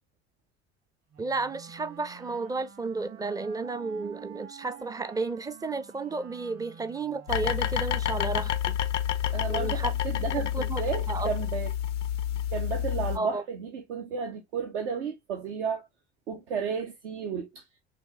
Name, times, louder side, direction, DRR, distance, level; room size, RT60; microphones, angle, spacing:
Wind instrument woodwind instrument, 1.1-8.5, right 8 dB, 50° right, 1.9 m, -49 dB
voice 1, 1.2-8.8 9.5-9.9 10.5-10.8 11.1-11.3 13.1-13.4, right 3 dB, 10° right, 0.4 m, -32 dB
sound 1, 7.3-13.2, left 11 dB, 90° left, 0.5 m, -29 dB
voice 2, 9.3-11.7 12.5-15.9 16.3-17.6, right 6 dB, 75° right, 0.9 m, -33 dB
6.2 x 2.6 x 2.7 m
figure-of-eight pair, 65°, 35 cm